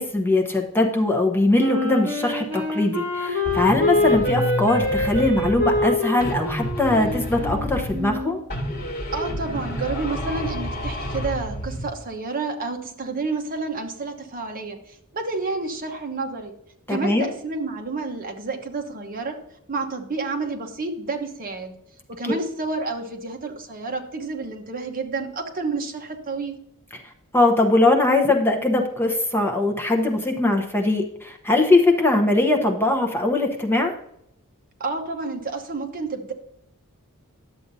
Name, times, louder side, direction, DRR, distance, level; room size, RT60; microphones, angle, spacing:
voice 1, 0.0-8.4 16.9-17.3 22.2-22.3 27.3-33.9, left 2 dB, 10° left, 2 dB, 0.9 m, -21 dB
Wind instrument woodwind instrument, 1.6-8.3, left 2 dB, 5° right, 2.3 m, -25 dB
sound 1, 3.4-5.9 6.2-8.2 8.5-11.9, equal, 50° left, 2.3 m, -30 dB
voice 2, 9.1-16.5 16.9-19.4 19.7-21.8 22.1-26.5 34.8-36.3, right 3 dB, 40° right, 4 dB, 1.0 m, -30 dB
11.0 x 7.5 x 2.7 m, 0.74 s
head